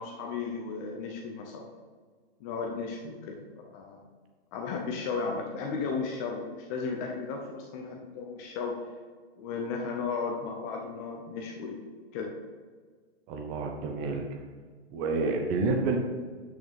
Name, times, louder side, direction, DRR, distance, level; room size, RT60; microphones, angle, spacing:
voice 1, 0.0-1.7 2.4-4.1 4.5-8.8 9.4-11.9 12.1-12.3, left 4 dB, 15° left, 1 dB, 0.4 m, -35 dB
voice 2, 13.3-14.3 14.9-16.0, right 3 dB, 25° right, 3 dB, 0.8 m, -29 dB
8.5 x 6.2 x 3.4 m, 1.5 s
hypercardioid pair, 150°, 33 cm